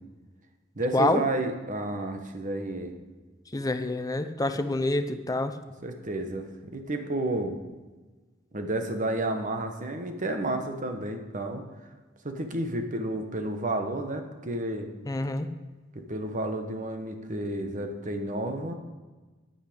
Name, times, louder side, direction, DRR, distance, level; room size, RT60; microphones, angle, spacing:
voice 1, 0.8-2.9 5.8-7.6 8.5-11.6 12.2-14.9 16.1-18.7, right 1 dB, 40° right, 6 dB, 1.2 m, -31 dB
voice 2, 3.5-5.5 15.1-15.5, left 2 dB, 20° left, 9 dB, 0.7 m, -27 dB
10.0 x 8.8 x 5.1 m, 1.3 s
head